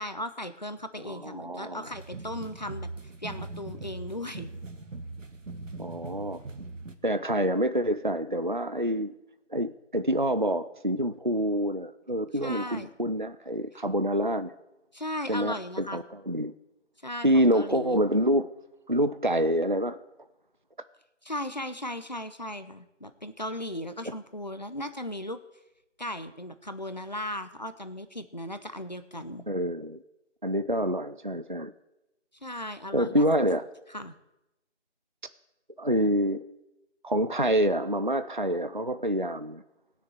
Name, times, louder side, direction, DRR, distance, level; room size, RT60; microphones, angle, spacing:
voice 1, 0.0-2.9 3.2-4.5 12.4-12.9 14.9-16.0 17.0-18.0 21.2-25.4 26.0-29.4 32.4-33.2 33.9-34.1, left 1 dB, 35° left, 10 dB, 0.8 m, -37 dB
voice 2, 1.0-1.9 5.8-6.4 7.0-9.1 9.5-14.5 15.3-16.5 17.2-18.5 18.9-20.0 29.5-30.0 30.4-31.7 32.9-33.7 35.8-36.4 37.0-39.6, equal, 40° right, 12 dB, 0.4 m, -27 dB
sound 1, 1.9-7.0, right 2 dB, 85° right, 1.8 m, -40 dB
18.0 x 6.7 x 8.0 m, 0.92 s
figure-of-eight pair, 180°, 37 cm